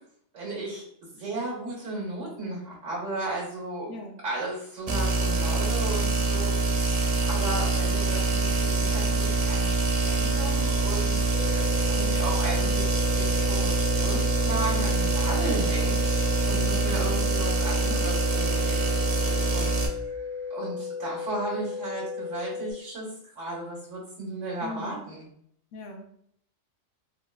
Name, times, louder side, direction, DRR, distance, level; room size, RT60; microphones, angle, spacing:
voice 1, 0.3-0.8 1.1-3.9 4.2-23.1 23.3-25.3, right 2 dB, 85° right, -5 dB, 1.3 m, -35 dB
sound 1, 4.9-19.9, right 3 dB, 55° right, 0.4 m, -25 dB
sound 2, 11.3-22.7, left 5 dB, 55° left, 1.1 m, -35 dB
voice 2, 24.6-25.0 25.7-26.2, left 1 dB, 80° left, 2 dB, 1.0 m, -39 dB
4.0 x 2.2 x 2.2 m, 0.67 s
omnidirectional pair, 1.2 m